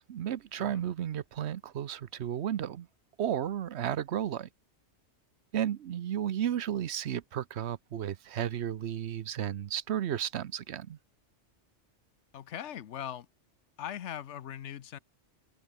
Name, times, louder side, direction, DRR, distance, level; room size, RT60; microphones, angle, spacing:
voice 1, 0.0-2.9 3.2-4.5 5.5-11.0, right 10 dB, 70° right, 1.0 m, -33 dB
voice 2, 12.3-13.3 13.8-15.0, left 10 dB, 80° left, 1.1 m, -40 dB
omnidirectional pair, 1.2 m